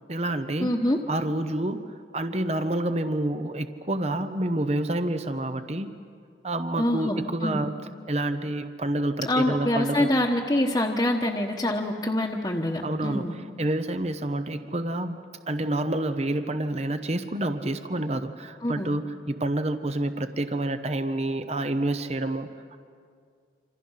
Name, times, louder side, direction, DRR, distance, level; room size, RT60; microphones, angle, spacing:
voice 1, 0.1-0.8 1.1-5.9 6.4-7.8 8.1-10.1 12.8-15.2 15.5-22.5, right 1 dB, 35° right, 9 dB, 0.9 m, -28 dB
voice 2, 0.6-1.0 6.8-7.6 9.2-13.4 18.6-18.9, left 1 dB, 20° left, -2 dB, 1.2 m, -25 dB
27.5 x 27.0 x 5.7 m, 2.2 s
head